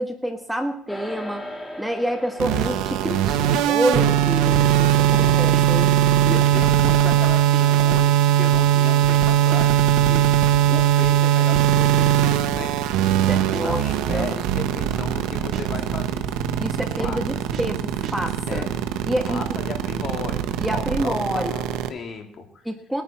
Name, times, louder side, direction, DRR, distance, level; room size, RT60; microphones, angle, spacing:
voice 1, 0.0-1.4 1.8-5.9 13.2-13.8 14.1-14.3 16.6-18.6 19.0-19.5 20.6-21.6 22.6-23.0, equal, 5° right, 5 dB, 1.4 m, -27 dB
sound 1, 0.9-10.4, left 1 dB, 15° left, 2.3 m, -42 dB
sound 2, 2.4-21.9, right 11 dB, 90° right, 1.0 m, -20 dB
sound 3, 2.5-2.9 3.3-3.7 4.3-4.9 5.3-5.9 6.2-6.7 7.3-11.9 12.3-12.7 13.3-15.9 16.3-18.4, right 6 dB, 55° right, 1.9 m, -38 dB
voice 2, 6.2-10.3 10.7-12.7 13.6-16.3 17.0-17.2 18.5-18.7 19.3-22.6, left 5 dB, 45° left, 4 dB, 2.6 m, -35 dB
21.0 x 9.8 x 4.3 m, 0.67 s
cardioid pair, 110°, 0 cm